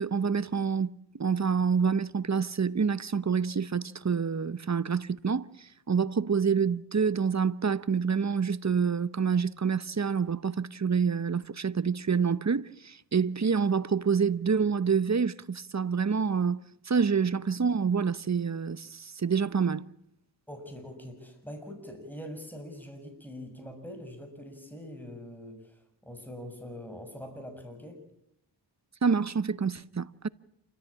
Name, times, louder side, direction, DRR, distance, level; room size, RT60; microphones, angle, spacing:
voice 1, 0.0-19.9 29.0-30.3, right 6 dB, 40° right, 0.9 m, -27 dB
voice 2, 20.5-28.0, equal, 5° left, 6.8 m, -43 dB
28.5 x 14.0 x 8.6 m
cardioid pair, 40°, 43 cm